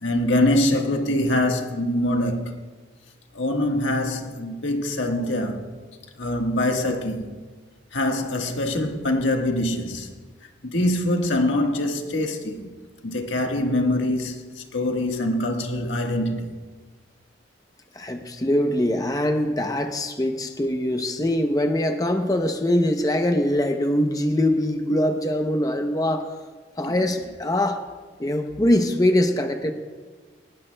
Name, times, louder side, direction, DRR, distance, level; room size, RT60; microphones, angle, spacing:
voice 1, 0.0-2.6 3.3-5.6 6.2-7.3 7.9-10.1 10.6-12.7 13.0-16.4, left 1 dB, 85° left, 1.5 m, -24 dB
voice 2, 18.0-26.3 26.8-27.8 28.2-29.7, left 1 dB, 20° left, 0.7 m, -23 dB
19.5 x 18.5 x 2.2 m
head